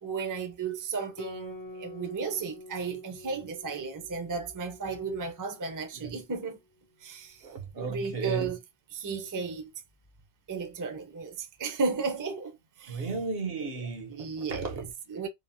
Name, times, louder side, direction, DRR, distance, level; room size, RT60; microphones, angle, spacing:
voice 1, 0.0-6.6 7.0-7.5 7.8-8.6 8.9-9.7 10.5-13.1 14.1-14.7 15.1-15.3, right 4 dB, 25° right, 0.5 m, -34 dB
Guitar, 1.2-6.1, left 1 dB, 30° left, 0.3 m, -46 dB
voice 2, 7.4-8.5 12.9-14.9, right 4 dB, 65° right, 1.0 m, -35 dB
3.1 x 2.0 x 2.5 m
omnidirectional pair, 1.1 m